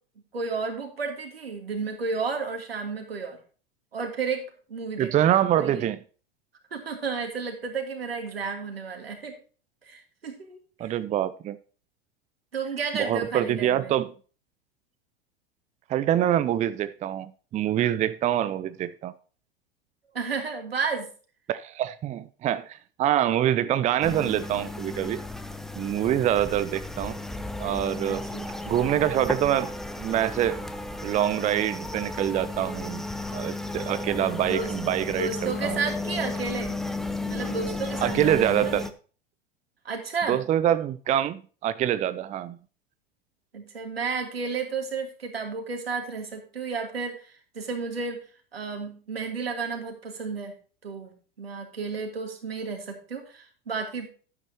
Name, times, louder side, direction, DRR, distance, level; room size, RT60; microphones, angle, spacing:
voice 1, 0.3-3.4 3.9-5.1 5.5-5.9 6.7-9.4 9.9-10.6 10.8-10.9 12.5-13.9 20.1-21.1 28.0-28.5 34.5-34.7 35.2-36.7 37.3-38.8 39.8-40.4 43.5-47.2 47.5-48.2 48.5-50.5 50.8-51.1 51.4-54.1, right 5 dB, 80° right, 2.9 m, -32 dB
voice 2, 5.0-6.0 10.8-11.6 13.0-14.1 15.9-19.1 21.5-25.2 25.8-27.1 27.6-28.2 28.7-29.7 30.0-30.6 31.0-33.0 33.3-35.8 38.0-38.9 40.3-42.6, right 11 dB, 25° right, 0.6 m, -25 dB
sound 1, 24.0-38.9, left 2 dB, ahead, 1.0 m, -34 dB
12.0 x 9.7 x 2.9 m
figure-of-eight pair, 85°, 30 cm